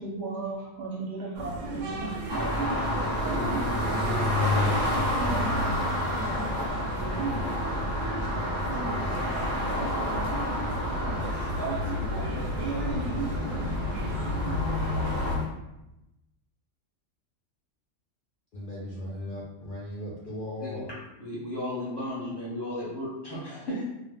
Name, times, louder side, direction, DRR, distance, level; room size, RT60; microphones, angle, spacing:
voice 1, 0.0-2.2, right 3 dB, 65° right, -3 dB, 0.8 m, -36 dB
sound 1, 1.3-15.5, equal, 90° right, 1.0 m, -33 dB
sound 2, 2.3-15.3, equal, 35° right, 0.3 m, -30 dB
voice 2, 3.2-4.6 5.2-5.7 6.2-9.4 18.5-20.9, left 1 dB, 60° left, -6 dB, 0.5 m, -39 dB
voice 3, 21.2-23.8, left 1 dB, 25° left, -8 dB, 0.7 m, -34 dB
2.1 x 2.1 x 3.4 m, 0.93 s
omnidirectional pair, 1.3 m